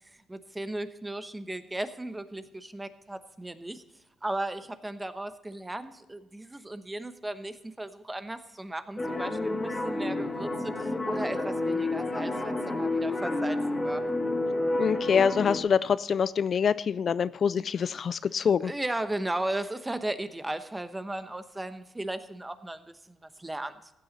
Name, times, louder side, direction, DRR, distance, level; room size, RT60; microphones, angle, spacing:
voice 1, 0.3-3.8 4.2-14.0 18.6-23.9, right 1 dB, 15° right, 11 dB, 1.0 m, -36 dB
sound 1, 9.0-15.6, left 2 dB, 20° left, 2.0 m, -30 dB
voice 2, 14.8-18.7, left 7 dB, 50° left, 17 dB, 0.3 m, -25 dB
15.0 x 9.1 x 4.1 m, 0.93 s
cardioid pair, 90°, 0 cm